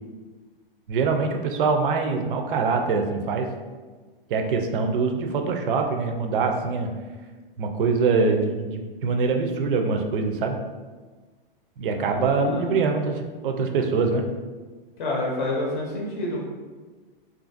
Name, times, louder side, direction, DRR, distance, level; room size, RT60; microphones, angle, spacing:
voice 1, 0.9-3.5 4.3-6.9 7.6-10.6 11.8-14.2, right 4 dB, 65° right, 4 dB, 0.4 m, -24 dB
voice 2, 12.0-12.8 15.0-16.4, left 2 dB, 55° left, -3 dB, 0.6 m, -29 dB
2.6 x 2.5 x 2.5 m, 1.3 s
hypercardioid pair, 165°, 29 cm